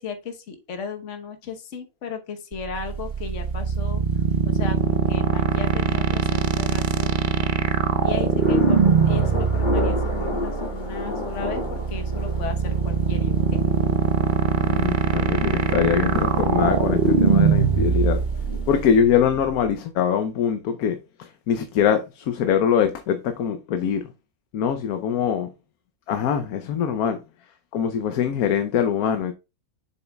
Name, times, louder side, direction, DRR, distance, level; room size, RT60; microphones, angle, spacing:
voice 1, 0.0-7.5 8.0-13.6 17.9-18.2, left 6 dB, 55° left, 1.4 m, -36 dB
sound 1, 2.5-19.7, right 6 dB, 55° right, 0.5 m, -22 dB
sound 2, 7.9-19.0, left 3 dB, 30° left, 2.1 m, -33 dB
voice 2, 14.5-18.2 18.7-24.1 24.5-25.5 26.1-27.2 27.7-29.3, left 8 dB, 80° left, 1.2 m, -23 dB
7.1 x 7.0 x 2.3 m
omnidirectional pair, 1.5 m